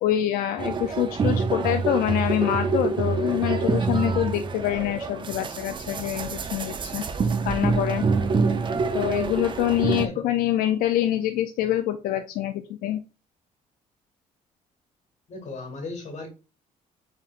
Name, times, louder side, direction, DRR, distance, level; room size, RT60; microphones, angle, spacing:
voice 1, 0.0-7.0 7.4-8.0 8.9-13.0, left 12 dB, 90° left, 8 dB, 0.4 m, -25 dB
sound 1, 0.6-10.1, right 4 dB, 35° right, 0.5 m, -26 dB
voice 2, 15.3-16.3, left 3 dB, 55° left, 4 dB, 2.0 m, -36 dB
4.3 x 3.9 x 2.4 m, 0.31 s
cardioid pair, 100°, 15 cm